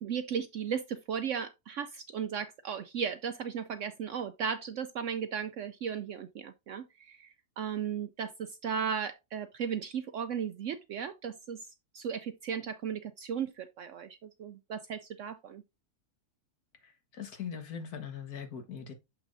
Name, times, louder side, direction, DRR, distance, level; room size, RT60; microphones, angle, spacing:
voice 1, 0.0-11.7 11.9-15.6, right 7 dB, 70° right, 0.7 m, -36 dB
voice 2, 17.1-18.9, left 7 dB, 70° left, 1.8 m, -40 dB
7.4 x 6.0 x 2.6 m
omnidirectional pair, 1.7 m